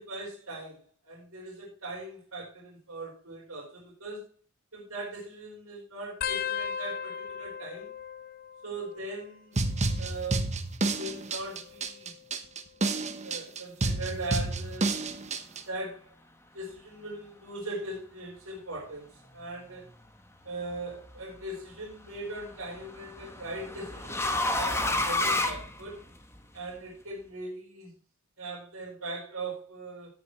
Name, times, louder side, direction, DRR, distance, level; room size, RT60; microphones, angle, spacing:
voice 1, 0.0-4.2 4.7-7.9 8.6-9.6 10.0-10.5 11.0-12.1 13.2-14.9 15.7-16.1 16.5-19.1 19.3-19.8 20.4-26.0 26.5-27.9 28.4-30.1, right 2 dB, 70° right, -6 dB, 4.6 m, -40 dB
sound 1, 6.2-9.4 9.7-10.3 11.3-12.7 13.4-13.7 14.9-15.3 16.8-16.9, left 8 dB, 45° left, 0.6 m, -38 dB
sound 2, 9.6-15.6, right 2 dB, 35° right, 1.0 m, -30 dB
sound 3, 20.5-20.9 22.4-26.4, left 2 dB, 10° left, 1.1 m, -30 dB
17.5 x 6.8 x 3.1 m, 0.37 s
head